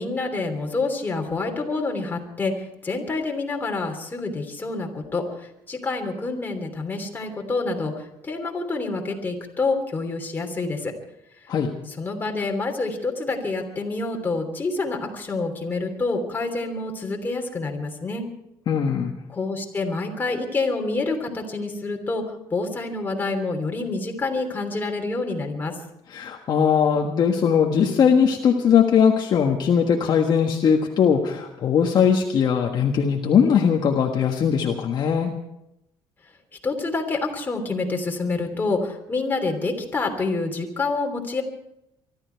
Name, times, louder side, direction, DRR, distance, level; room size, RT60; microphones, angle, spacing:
voice 1, 0.0-10.9 12.0-18.3 19.3-22.2 22.5-25.7 36.6-41.4, left 3 dB, 20° left, 2 dB, 3.1 m, -27 dB
voice 2, 18.7-19.1 26.1-35.3, left 7 dB, 50° left, 2 dB, 1.5 m, -20 dB
24.0 x 13.0 x 4.6 m, 0.85 s
cardioid pair, 125°, 10 cm